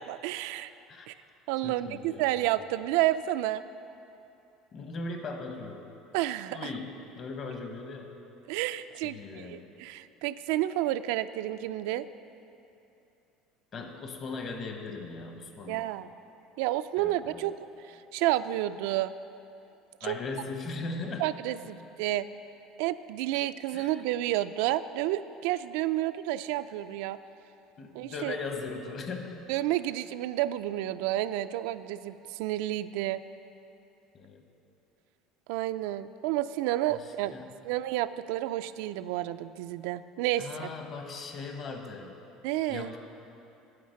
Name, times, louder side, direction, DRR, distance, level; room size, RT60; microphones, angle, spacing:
voice 1, 0.1-0.7 1.1-1.2 1.5-3.6 6.1-6.7 8.5-12.1 15.7-16.1 16.6-17.5 17.9-19.1 20.0-20.2 21.2-22.3 22.8-27.2 27.9-28.4 29.5-33.2 35.5-37.3 37.6-40.7 42.4-42.9, right 14 dB, 80° right, 12 dB, 0.3 m, -30 dB
voice 2, 1.6-2.2 4.7-5.8 6.5-8.1 9.0-9.7 13.7-15.8 17.0-17.5 20.0-21.3 23.7-23.9 27.8-29.4 34.1-34.4 37.0-37.5 40.4-42.1 42.7-43.0, left 3 dB, 35° left, 4 dB, 1.0 m, -39 dB
9.4 x 8.0 x 6.4 m, 2.8 s
cardioid pair, 150°, 0 cm